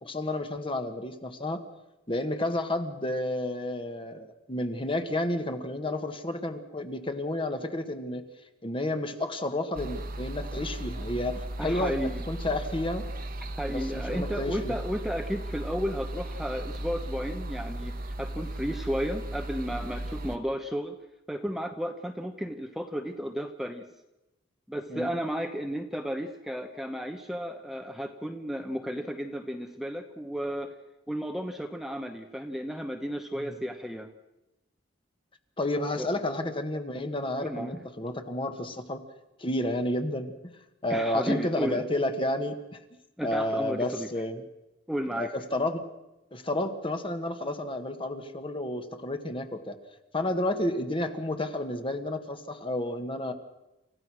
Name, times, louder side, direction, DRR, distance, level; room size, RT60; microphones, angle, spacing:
voice 1, 0.0-1.6 2.1-8.2 8.6-13.1 13.7-14.7 24.9-25.1 33.5-33.6 35.6-39.0 39.4-40.3 40.8-42.8 43.2-44.4 45.2-45.8 46.3-49.8 50.1-53.3, left 1 dB, 30° left, 7 dB, 1.6 m, -31 dB
sound 1, 9.7-20.4, right 1 dB, 50° right, 1.4 m, -36 dB
voice 2, 11.6-12.3 13.6-21.0 21.3-23.9 24.7-30.7 31.1-34.1 36.0-36.1 37.4-37.8 40.9-41.8 43.2-44.1 44.9-45.3, equal, ahead, 5 dB, 1.0 m, -33 dB
28.5 x 15.0 x 6.3 m, 0.94 s
head